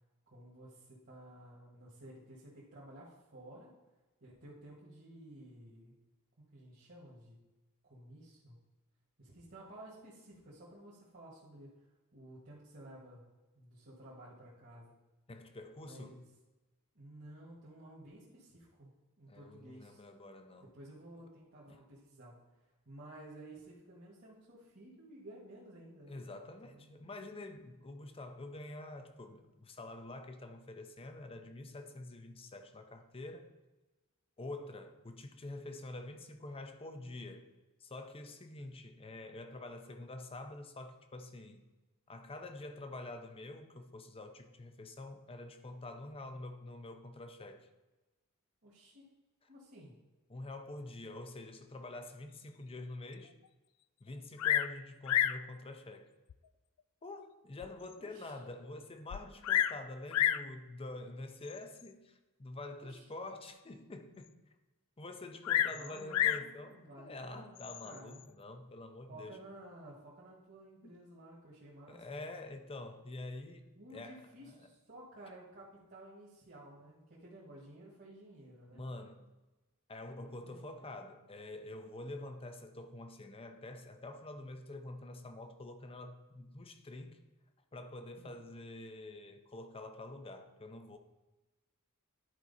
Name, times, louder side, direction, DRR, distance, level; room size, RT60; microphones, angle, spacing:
voice 1, 0.3-3.7 4.2-5.9 6.4-7.4 7.8-8.6 9.2-13.2 13.5-15.0 15.8-16.3 16.9-20.0 20.6-27.0 48.6-49.0 49.5-50.0 58.0-58.3 62.7-63.1 65.7-68.2 69.1-72.2 73.8-78.8 80.1-80.9 88.2-88.4, right 1 dB, 50° right, -6 dB, 1.7 m, -54 dB
voice 2, 15.3-16.2 19.3-20.8 21.7-21.8 26.1-33.5 34.4-37.5 37.8-41.6 42.1-47.7 50.3-53.3 54.0-56.1 57.0-64.3 65.0-69.4 71.9-73.6 73.9-74.6 78.7-79.3 79.9-87.2 87.7-91.0, left 2 dB, 25° left, 7 dB, 0.6 m, -47 dB
Bird vocalization bird call bird song, 54.4-54.8 55.1-55.4 56.3-56.4 57.0-57.1 57.6-57.7 57.9-58.0 59.1-59.8 60.1-60.5 61.5-61.8 65.4-66.5 67.6-68.0, left 11 dB, 80° left, 0.3 m, -30 dB
10.5 x 4.6 x 4.1 m, 1.1 s
head